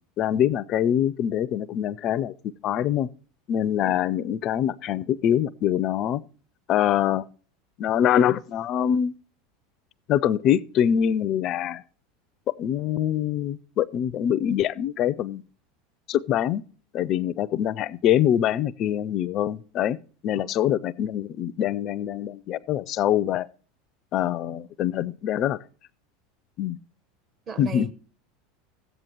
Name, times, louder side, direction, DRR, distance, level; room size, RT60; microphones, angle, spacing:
voice 1, 0.2-2.3 2.6-3.1 3.5-6.2 6.7-7.3 7.8-9.1 10.1-11.8 12.5-15.4 16.1-16.6 16.9-20.0 20.2-23.5 24.1-25.6 26.6-26.8 27.6-27.9, left 10 dB, 45° left, 0.4 m, -24 dB
voice 2, 27.5-27.9, right 5 dB, 40° right, 1.2 m, -37 dB
13.5 x 9.0 x 2.9 m
hypercardioid pair, 85°, 0 cm